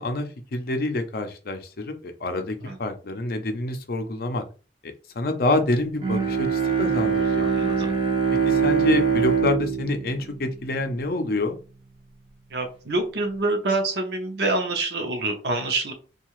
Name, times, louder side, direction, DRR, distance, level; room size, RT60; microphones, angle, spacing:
voice 1, 0.0-4.4 5.2-7.5 8.3-11.6, left 2 dB, 55° left, 6 dB, 0.5 m, -27 dB
Bowed string instrument, 6.0-11.3, right 6 dB, 30° right, 0.5 m, -24 dB
voice 2, 7.4-8.0 12.5-15.9, right 2 dB, 65° right, 5 dB, 0.7 m, -26 dB
2.7 x 2.3 x 3.0 m, 0.35 s
head